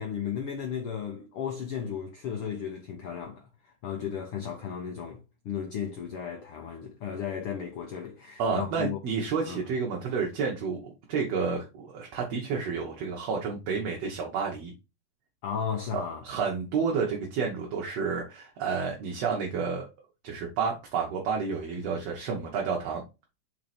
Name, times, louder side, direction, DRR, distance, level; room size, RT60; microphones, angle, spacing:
voice 1, 0.0-9.0 9.5-9.7 15.4-16.2, left 8 dB, 75° left, 1.3 m, -35 dB
voice 2, 8.4-14.7 15.9-19.9 20.2-23.0, right 5 dB, 60° right, 2.1 m, -30 dB
5.3 x 4.7 x 4.2 m
omnidirectional pair, 3.6 m